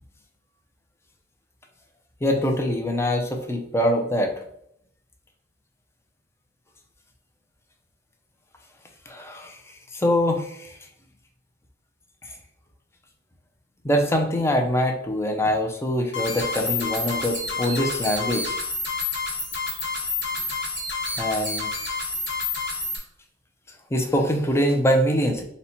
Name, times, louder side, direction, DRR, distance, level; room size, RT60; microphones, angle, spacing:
voice 1, 2.2-4.3 9.1-9.6 9.9-10.8 13.8-18.6 21.2-21.7 23.9-25.4, equal, 15° left, 3 dB, 0.5 m, -23 dB
sound 1, 16.1-23.0, left 3 dB, 60° left, 1.2 m, -29 dB
4.1 x 2.2 x 4.2 m, 0.72 s
head